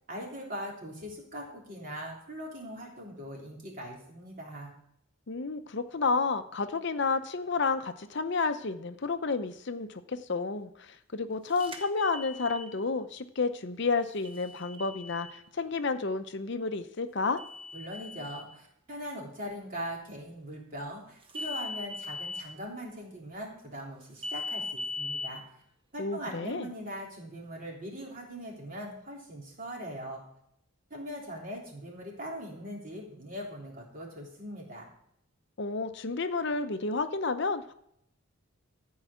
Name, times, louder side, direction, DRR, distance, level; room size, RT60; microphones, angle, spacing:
voice 1, 0.1-4.7 17.7-25.4 25.9-30.2 30.9-34.9, equal, 40° right, -2 dB, 3.3 m, -41 dB
voice 2, 5.3-17.4 26.0-26.7 35.6-37.7, left 4 dB, 55° left, 9 dB, 0.7 m, -31 dB
sound 1, 11.6-12.7 14.2-15.3 17.4-18.4 21.3-22.4 24.2-25.3, left 3 dB, 25° right, 1.0 m, -39 dB
14.5 x 4.8 x 8.1 m, 0.73 s
head